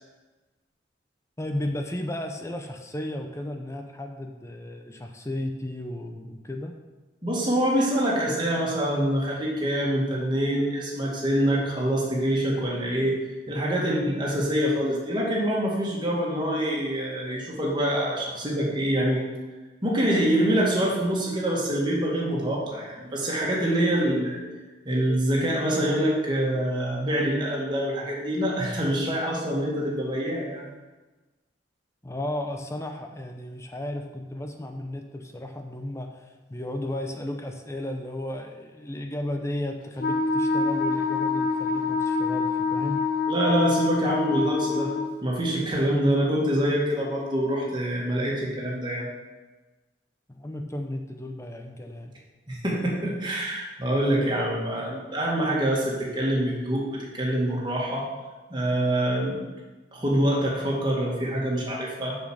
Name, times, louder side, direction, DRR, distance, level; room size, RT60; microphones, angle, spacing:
voice 1, 1.4-6.7 32.0-43.0 50.3-52.1, left 1 dB, 15° left, 4 dB, 0.6 m, -34 dB
voice 2, 7.2-13.1 13.5-19.2 19.8-24.4 24.9-30.7 43.3-44.9 45.2-49.1 52.5-58.1 58.5-59.4 59.9-62.2, right 1 dB, 25° right, -4 dB, 2.1 m, -25 dB
Wind instrument woodwind instrument, 40.0-45.2, left 4 dB, 50° left, 1.1 m, -26 dB
6.7 x 6.3 x 6.4 m, 1.2 s
head